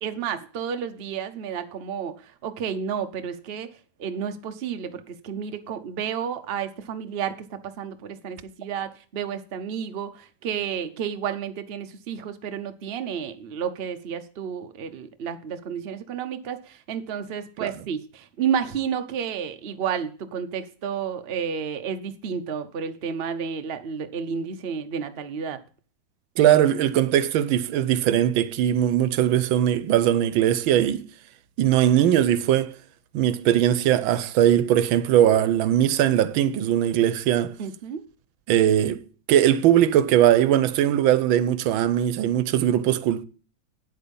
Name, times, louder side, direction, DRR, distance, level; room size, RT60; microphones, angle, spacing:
voice 1, 0.0-3.7 4.0-25.6 37.6-38.0, right 7 dB, 45° right, 0.8 m, -31 dB
voice 2, 26.4-31.0 31.6-32.7 33.1-37.5 38.5-39.0 39.3-43.2, right 11 dB, 90° right, 1.5 m, -20 dB
9.2 x 8.3 x 5.4 m
omnidirectional pair, 2.1 m